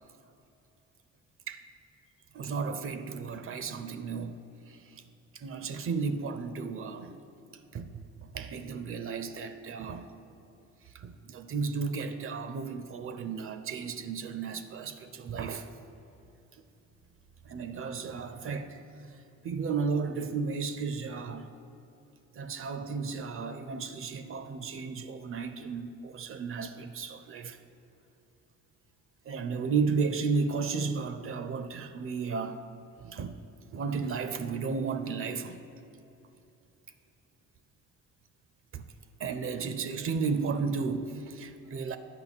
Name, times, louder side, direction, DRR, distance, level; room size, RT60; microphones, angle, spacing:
voice 1, 2.3-4.4 4.7-4.8 5.3-7.2 7.7-10.1 10.9-15.7 17.5-18.8 19.4-21.5 22.3-27.6 29.3-32.6 33.0-33.4 33.7-35.6 38.7-38.8 39.2-42.0, right 5 dB, 45° right, 0.5 m, -33 dB
8.9 x 5.4 x 4.1 m
cardioid pair, 90°, 30 cm